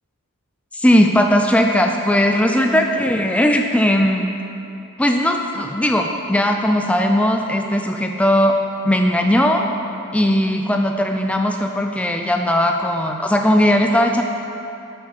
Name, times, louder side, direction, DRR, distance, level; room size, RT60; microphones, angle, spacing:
voice 1, 0.7-4.3 5.0-8.5 8.8-9.7 10.1-14.2, equal, 5° left, 3 dB, 0.4 m, -18 dB
12.5 x 7.7 x 4.8 m, 2.7 s
head